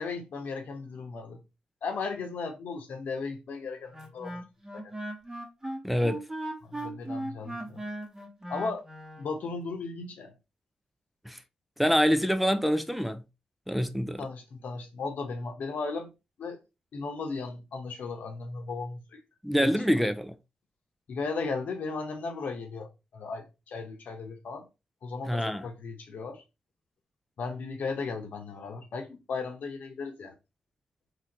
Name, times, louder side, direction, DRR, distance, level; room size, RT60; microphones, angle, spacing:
voice 1, 0.0-1.4 1.8-4.4 4.7-4.9 6.6-7.9 8.5-8.8 9.2-10.3 14.2-16.1 16.4-16.6 16.9-19.2 19.6-19.7 21.1-24.7 25.0-26.4 27.4-30.3, left 4 dB, 70° left, 0.9 m, -36 dB
Wind instrument woodwind instrument, 3.9-9.3, right 1 dB, 15° right, 1.0 m, -38 dB
voice 2, 5.8-6.2 11.3-11.4 11.8-13.2 13.7-14.3 19.4-20.3 25.3-25.7, equal, ahead, 0.4 m, -26 dB
3.1 x 2.7 x 2.9 m
supercardioid pair, 50°, 3 cm